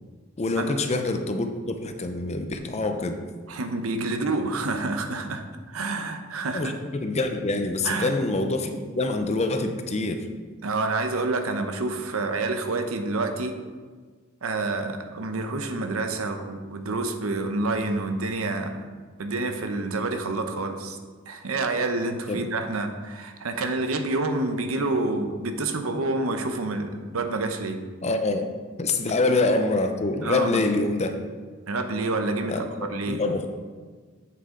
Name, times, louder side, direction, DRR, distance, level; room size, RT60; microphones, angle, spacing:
voice 1, 0.4-3.2 6.5-10.2 22.3-22.5 28.0-28.5 28.8-31.2 32.5-33.5, left 2 dB, 30° left, 6 dB, 0.6 m, -26 dB
voice 2, 3.5-6.7 7.8-8.2 10.6-13.5 14.4-18.9 19.2-21.0 21.3-27.8 30.2-30.6 31.7-33.2, right 2 dB, 75° right, 6 dB, 0.8 m, -28 dB
7.7 x 6.5 x 3.8 m, 1.5 s
head